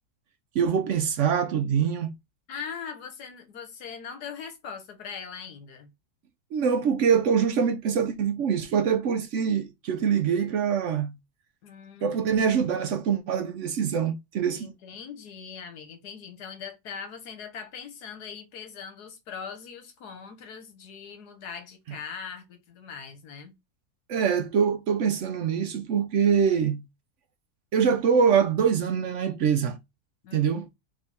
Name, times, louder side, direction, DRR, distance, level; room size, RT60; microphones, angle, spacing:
voice 1, 0.5-2.1 6.5-11.1 12.0-14.7 24.1-26.8 27.7-29.8 30.3-30.7, right 7 dB, 65° right, 0.7 m, -24 dB
voice 2, 2.5-5.9 11.6-12.4 14.5-23.5 30.2-30.6, left 6 dB, 80° left, 1.6 m, -41 dB
3.6 x 3.3 x 4.1 m
omnidirectional pair, 1.7 m